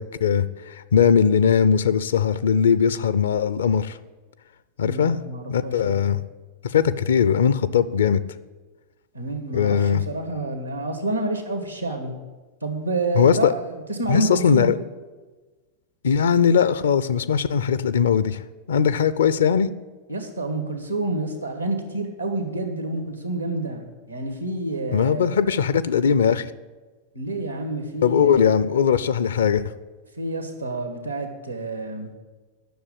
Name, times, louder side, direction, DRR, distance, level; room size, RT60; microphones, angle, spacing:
voice 1, 0.0-4.0 4.8-5.2 5.5-6.2 6.6-8.2 9.5-10.0 13.2-13.5 14.1-14.7 16.0-18.4 18.7-19.7 24.9-26.4 28.0-29.6, left 7 dB, 65° left, 15 dB, 0.5 m, -20 dB
voice 2, 4.8-6.0 9.1-12.1 12.6-14.7 20.1-25.4 27.1-28.6 30.2-32.1, right 2 dB, 85° right, 4 dB, 1.8 m, -29 dB
10.5 x 6.8 x 8.7 m, 1.3 s
figure-of-eight pair, 90°, 0 cm